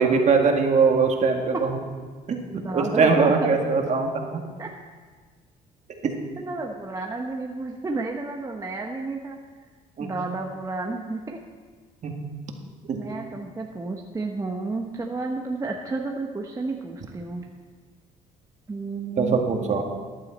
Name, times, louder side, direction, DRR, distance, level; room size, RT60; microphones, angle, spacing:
voice 1, 0.0-1.7 2.3-4.4 6.0-6.1 10.0-10.1 12.0-12.1 12.9-13.0 19.2-19.8, right 4 dB, 45° right, 3 dB, 1.9 m, -21 dB
voice 2, 2.5-3.3 4.6-4.7 6.4-9.4 10.0-11.4 13.0-17.4 18.7-19.8, right 3 dB, 20° right, 1 dB, 1.0 m, -31 dB
15.0 x 10.5 x 4.2 m, 1.5 s
cardioid pair, 110°, 17 cm